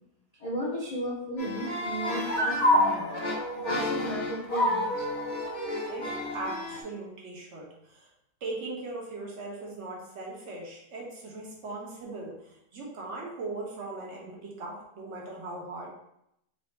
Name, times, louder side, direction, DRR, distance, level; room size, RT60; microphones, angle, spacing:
voice 1, 0.4-3.1 3.5-5.1, right 1 dB, 90° left, -4 dB, 0.3 m, -35 dB
sound 1, 1.4-6.8, left 1 dB, 35° left, 1.0 m, -28 dB
voice 2, 5.8-8.1 8.4-15.9, right 2 dB, 55° right, -2 dB, 1.2 m, -39 dB
4.2 x 2.0 x 4.4 m, 0.80 s
omnidirectional pair, 1.5 m